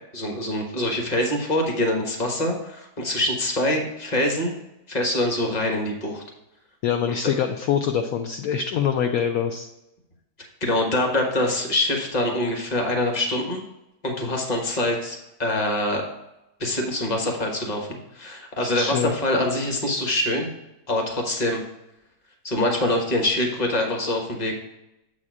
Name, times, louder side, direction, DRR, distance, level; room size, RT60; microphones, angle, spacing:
voice 1, 0.1-4.5 4.9-6.2 10.6-13.6 14.0-16.0 16.6-20.5 20.9-21.6 22.4-24.5, left 1 dB, 25° left, 2 dB, 1.2 m, -24 dB
voice 2, 6.8-9.7 18.6-19.1, left 8 dB, 75° left, 5 dB, 0.8 m, -24 dB
7.4 x 4.2 x 4.8 m, 0.90 s
omnidirectional pair, 1.9 m